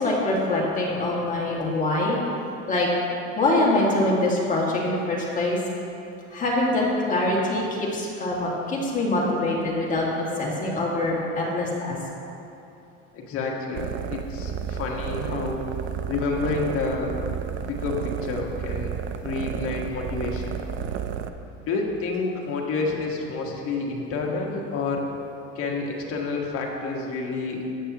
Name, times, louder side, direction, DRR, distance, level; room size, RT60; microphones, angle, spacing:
voice 1, 0.0-2.2 2.7-2.9 3.4-5.6 6.3-12.0 27.5-27.7, left 2 dB, 25° left, -4 dB, 2.1 m, -24 dB
voice 2, 13.1-15.6 16.1-17.2 17.7-18.9 19.2-20.6 21.6-25.0 25.5-27.6, left 3 dB, 50° left, -1 dB, 1.6 m, -29 dB
sound 1, 13.7-21.3, right 8 dB, 40° right, 0.5 m, -32 dB
14.0 x 8.8 x 3.0 m, 2.7 s
cardioid pair, 130°, 30 cm